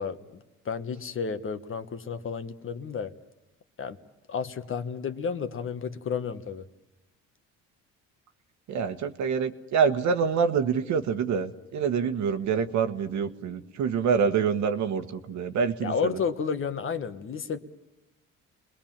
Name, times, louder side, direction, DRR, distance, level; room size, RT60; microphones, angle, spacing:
voice 1, 0.0-3.1 3.8-4.0 4.3-6.6 15.8-17.6, left 6 dB, 45° left, 9 dB, 1.4 m, -32 dB
voice 2, 8.7-16.1, right 6 dB, 65° right, 8 dB, 1.5 m, -26 dB
28.5 x 21.0 x 7.4 m, 0.94 s
cardioid pair, 100°, 30 cm